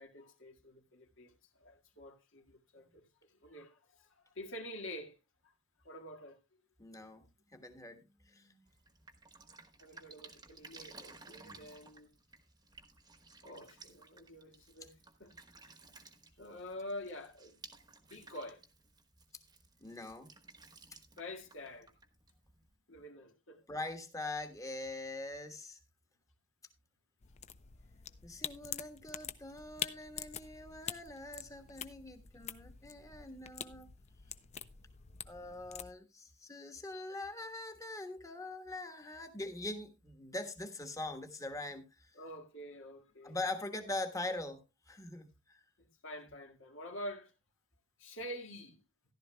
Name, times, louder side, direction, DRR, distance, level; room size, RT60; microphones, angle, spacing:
voice 1, 0.0-5.2 5.4-5.5 5.8-6.4 9.8-12.1 13.4-14.9 15.2-15.3 16.4-17.6 18.0-18.6 21.2-21.9 22.9-23.6 42.1-43.4 46.0-47.3 48.0-48.8, left 1 dB, 70° left, 1.9 m, -47 dB
voice 2, 6.8-7.2 7.5-8.6 11.4-11.6 19.8-20.3 23.7-25.8 28.2-33.9 35.3-42.1 43.2-45.6, left 2 dB, 15° left, 1.3 m, -43 dB
Drip, 8.7-22.7, right 3 dB, 20° right, 1.2 m, -57 dB
sound 1, 27.2-35.9, left 8 dB, 35° left, 0.5 m, -46 dB
14.5 x 11.5 x 2.2 m
head